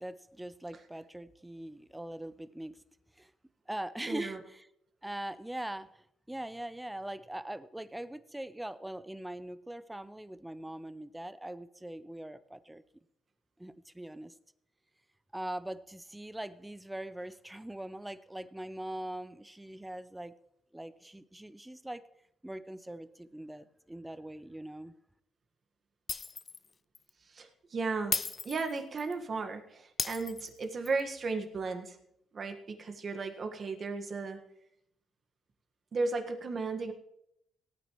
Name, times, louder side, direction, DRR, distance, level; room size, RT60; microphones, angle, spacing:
voice 1, 0.0-2.8 3.2-3.3 3.7-4.7 5.0-12.8 13.6-14.3 15.3-20.3 20.7-22.0 22.4-24.9, right 1 dB, 10° right, 15 dB, 0.6 m, -42 dB
voice 2, 4.1-4.4 27.3-32.0 32.3-34.4 35.9-36.9, right 3 dB, 45° right, 5 dB, 1.6 m, -35 dB
Shatter, 26.1-26.7 27.0-27.1 28.1-29.1 30.0-31.0, left 4 dB, 35° left, 0.3 m, -35 dB
17.5 x 9.1 x 3.1 m, 0.76 s
cardioid pair, 90°, 0 cm